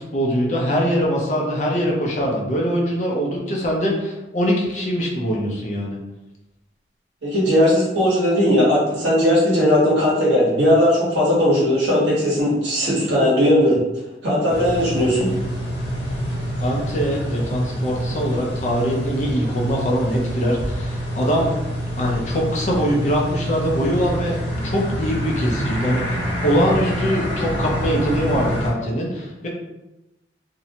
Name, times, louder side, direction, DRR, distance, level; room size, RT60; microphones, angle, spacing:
voice 1, 0.0-6.0 16.6-21.5 22.0-29.5, equal, 40° left, -2 dB, 0.5 m, -22 dB
voice 2, 7.2-13.8 14.2-15.3, equal, 80° right, -6 dB, 1.1 m, -18 dB
sound 1, 14.5-28.7, equal, 90° left, 1.0 m, -26 dB
2.6 x 2.1 x 2.8 m, 0.97 s
head